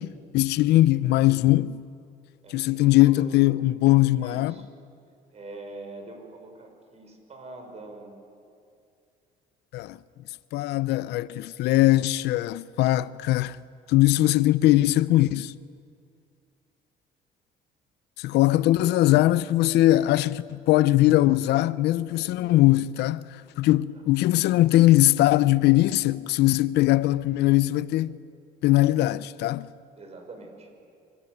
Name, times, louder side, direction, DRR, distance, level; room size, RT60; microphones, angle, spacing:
voice 1, 0.0-1.8 2.5-4.5 9.7-10.0 10.5-13.6 13.9-15.5 18.2-28.1 28.6-29.7, left 16 dB, 80° left, 0.6 m, -21 dB
voice 2, 2.4-3.4 4.2-4.7 5.3-8.2 18.7-19.2 22.1-22.7 30.0-30.7, right 2 dB, 40° right, 5.8 m, -44 dB
26.0 x 19.0 x 9.3 m
cardioid pair, 110°, 17 cm